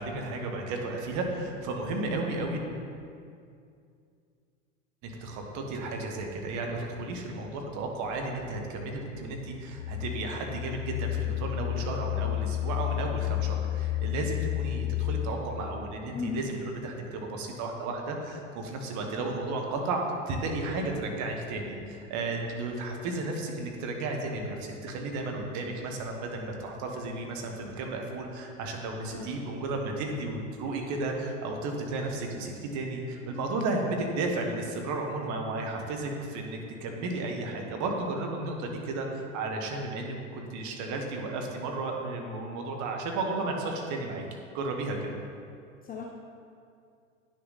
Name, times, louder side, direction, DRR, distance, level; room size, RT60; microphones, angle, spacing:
voice 1, 0.0-2.8 5.0-44.2 44.5-45.1, right 2 dB, 45° right, 2 dB, 1.6 m, -33 dB
sound 1, 8.1-15.9, left 14 dB, 60° left, 1.0 m, -32 dB
voice 2, 16.1-16.5 29.1-29.4 45.8-46.0, left 5 dB, 25° left, -1 dB, 0.8 m, -36 dB
10.0 x 6.4 x 4.1 m, 2.4 s
hypercardioid pair, 95°, 39 cm